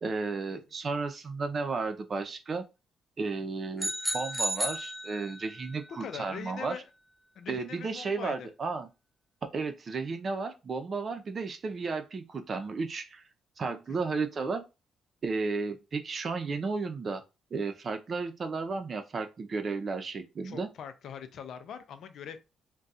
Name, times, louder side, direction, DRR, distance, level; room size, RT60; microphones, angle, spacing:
voice 1, 0.0-2.7 3.2-6.8 7.5-8.9 9.4-13.2 13.6-14.6 15.2-17.2 17.5-20.7, right 4 dB, 45° right, 0.6 m, -33 dB
sound 1, 3.8-5.6, equal, ahead, 0.5 m, -33 dB
voice 2, 5.9-6.9 7.4-8.5 13.9-14.1 20.4-22.4, left 8 dB, 70° left, 0.5 m, -42 dB
2.4 x 2.2 x 4.0 m
cardioid pair, 90°, 0 cm